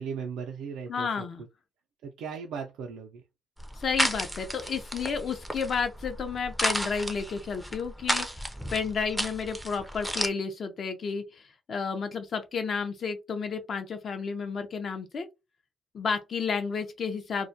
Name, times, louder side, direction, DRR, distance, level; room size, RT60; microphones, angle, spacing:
voice 1, 0.0-1.5 2.0-3.2, right 6 dB, 85° right, 0.4 m, -37 dB
voice 2, 0.9-1.4 3.8-11.4 11.7-15.3 15.9-17.5, left 5 dB, 50° left, 0.5 m, -31 dB
sound 1, 3.6-10.3, equal, ahead, 0.4 m, -33 dB
2.2 x 2.1 x 2.6 m
cardioid pair, 90°, 0 cm